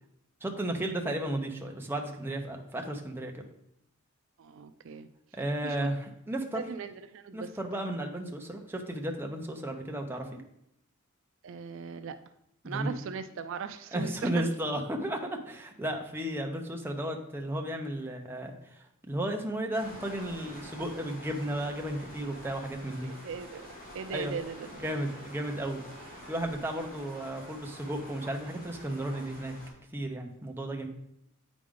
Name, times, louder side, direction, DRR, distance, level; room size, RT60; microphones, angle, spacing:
voice 1, 0.4-3.4 5.3-6.6 7.3-10.4 12.6-13.0 13.9-23.1 24.1-24.3 24.8-25.8 26.3-29.5 29.9-30.9, right 1 dB, 10° right, 2 dB, 0.8 m, -34 dB
voice 2, 4.4-5.1 5.6-5.9 6.5-7.5 11.4-12.2 12.6-14.4 23.0-23.7 23.9-24.8, right 6 dB, 65° right, 10 dB, 0.4 m, -39 dB
sound 1, 19.7-29.7, equal, 40° left, 2.5 m, -47 dB
8.4 x 5.0 x 3.8 m, 0.79 s
head